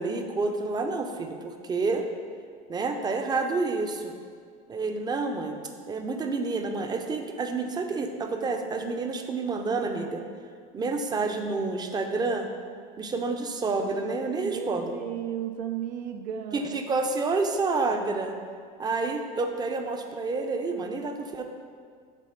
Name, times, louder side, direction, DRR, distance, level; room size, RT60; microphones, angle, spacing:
voice 1, 0.0-2.1 2.7-4.1 4.7-5.6 5.9-10.2 10.7-12.5 13.0-15.0 16.5-18.4 18.8-21.4, right 3 dB, 20° right, 5 dB, 0.5 m, -29 dB
voice 2, 14.4-16.8, right 9 dB, 80° right, 6 dB, 0.6 m, -34 dB
7.5 x 3.8 x 5.1 m, 2.1 s
supercardioid pair, 130°, 21 cm